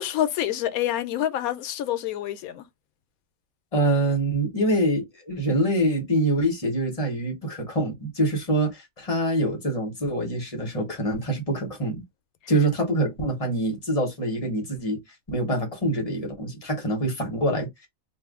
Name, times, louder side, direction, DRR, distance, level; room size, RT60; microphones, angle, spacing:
voice 1, 0.0-2.6, left 12 dB, 85° left, 1.0 m, -27 dB
voice 2, 3.7-12.0 12.5-15.0 15.3-17.9, right 1 dB, 30° left, 1.0 m, -25 dB
2.6 x 2.5 x 3.5 m
omnidirectional pair, 1.5 m